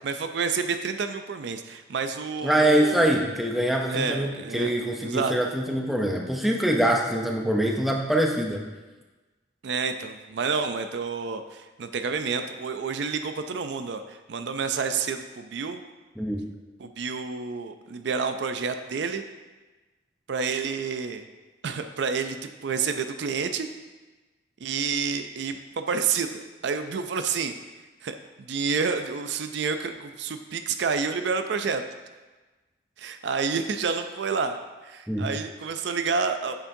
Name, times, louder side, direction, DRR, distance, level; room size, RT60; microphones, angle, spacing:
voice 1, 0.0-3.3 3.9-5.4 9.6-15.8 16.8-19.2 20.3-21.2 21.6-23.7 24.6-27.6 28.0-31.8 33.0-34.6 34.8-36.5, right 5 dB, 60° right, 8 dB, 0.4 m, -29 dB
voice 2, 2.4-8.6 16.2-16.5 35.1-35.3, right 1 dB, ahead, 0 dB, 0.6 m, -24 dB
8.8 x 7.0 x 2.7 m, 1.2 s
head